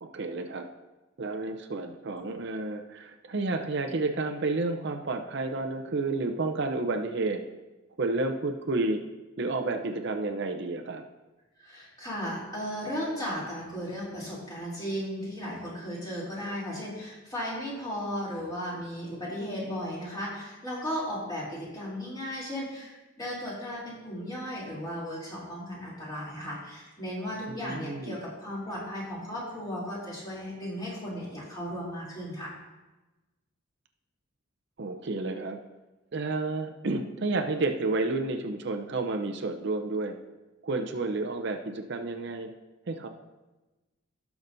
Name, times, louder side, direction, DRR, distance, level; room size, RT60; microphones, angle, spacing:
voice 1, 0.0-0.7 1.2-7.4 8.0-9.0 9.4-11.0 27.5-28.2 34.8-35.6 36.1-40.2 40.6-42.5 42.9-43.1, right 3 dB, 60° right, 4 dB, 0.7 m, -30 dB
voice 2, 11.6-32.5, equal, 20° left, -7 dB, 3.1 m, -35 dB
17.5 x 5.9 x 2.7 m, 1.1 s
head